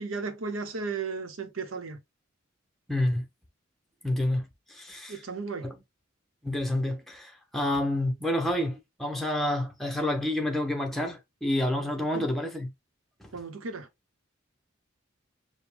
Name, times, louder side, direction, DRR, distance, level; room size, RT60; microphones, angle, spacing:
voice 1, 0.0-2.0 5.1-5.7 11.8-12.3 13.3-13.9, right 4 dB, 85° right, 0.9 m, -35 dB
voice 2, 2.9-3.2 4.0-5.2 5.6-5.7 6.4-12.7 13.2-13.3, left 1 dB, ahead, 0.8 m, -29 dB
5.1 x 2.2 x 3.3 m
head